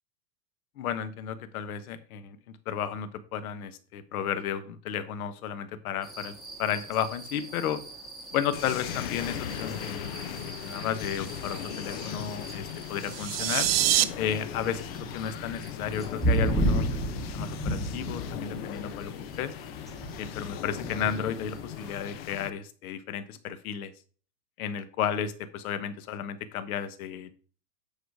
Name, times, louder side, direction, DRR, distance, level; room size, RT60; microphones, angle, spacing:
voice 1, 0.8-2.4 2.7-7.8 8.3-13.7 14.2-14.9 15.1-17.0 17.3-19.1 19.4-19.5 20.2-23.9 24.6-27.4, left 8 dB, 60° left, 12 dB, 1.2 m, -33 dB
sound 1, 6.0-22.1, right 1 dB, ahead, 1.0 m, -35 dB
sound 2, 8.5-22.5, left 9 dB, 40° left, 0.6 m, -38 dB
sound 3, 13.0-14.0, right 14 dB, 40° right, 0.4 m, -25 dB
9.0 x 4.9 x 4.7 m, 0.40 s
supercardioid pair, 165°, 49 cm